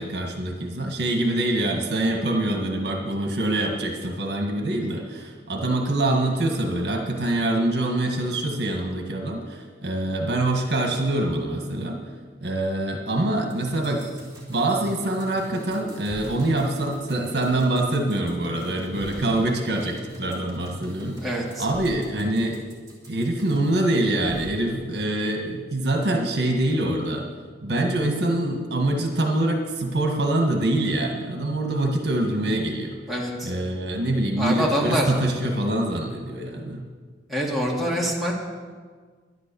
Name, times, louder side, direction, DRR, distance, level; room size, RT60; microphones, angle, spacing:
voice 1, 0.0-12.0 12.4-14.1 14.5-21.3 21.6-22.6 23.1-27.3 27.6-33.0 33.4-36.8, right 1 dB, 60° right, 2 dB, 1.6 m, -25 dB
sound 1, 13.5-23.9 24.2-24.5, right 1 dB, 20° right, 3.3 m, -42 dB
voice 2, 21.2-21.7 33.1-33.5 34.4-35.1 37.3-38.3, equal, ahead, -5 dB, 2.3 m, -25 dB
12.0 x 11.0 x 7.0 m, 1.5 s
head